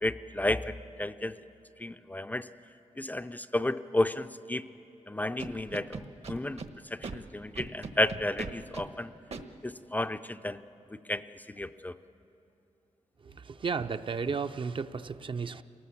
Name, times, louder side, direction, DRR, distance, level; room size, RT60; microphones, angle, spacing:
voice 1, 0.0-1.4 1.8-2.5 3.0-4.6 5.1-6.6 6.9-9.1 9.6-10.6 11.1-11.9, left 1 dB, 15° left, 10 dB, 0.4 m, -32 dB
Scratching (performance technique), 5.4-6.7 7.0-7.2 7.6-8.9 9.3-9.4, right 4 dB, 60° right, 1.2 m, -39 dB
voice 2, 13.2-15.6, right 5 dB, 45° right, 10 dB, 0.6 m, -34 dB
27.5 x 18.5 x 7.2 m, 2.8 s
wide cardioid pair, 115°, 12 cm